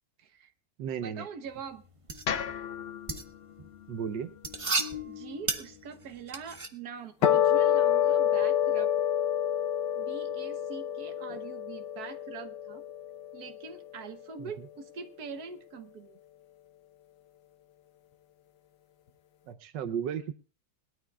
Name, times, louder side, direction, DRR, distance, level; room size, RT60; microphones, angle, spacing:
voice 1, 0.2-0.5 1.0-1.8 4.7-8.9 10.0-12.8 13.3-16.2, right 6 dB, 65° right, 7 dB, 1.6 m, -44 dB
voice 2, 0.8-1.3 3.9-4.3 11.3-11.4 14.4-14.5 19.5-20.3, right 8 dB, 90° right, 10 dB, 1.5 m, -34 dB
sound 1, 1.5-6.7, right 2 dB, 25° right, 0.7 m, -35 dB
sound 2, 2.2-6.4, left 8 dB, 55° left, 0.7 m, -40 dB
sound 3, 7.2-13.7, left 10 dB, 80° left, 1.6 m, -27 dB
20.5 x 12.5 x 2.4 m, 0.36 s
omnidirectional pair, 1.8 m